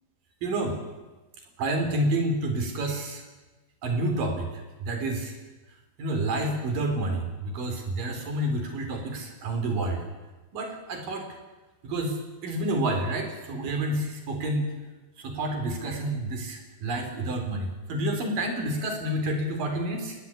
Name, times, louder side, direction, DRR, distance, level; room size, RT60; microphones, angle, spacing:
voice 1, 0.4-0.8 1.6-3.2 3.8-4.5 4.8-5.3 6.0-10.0 10.5-11.3 11.8-12.2 12.4-14.7 15.2-20.2, right 1 dB, 55° right, 4 dB, 5.0 m, -29 dB
30.0 x 11.0 x 9.9 m, 1.2 s
omnidirectional pair, 4.9 m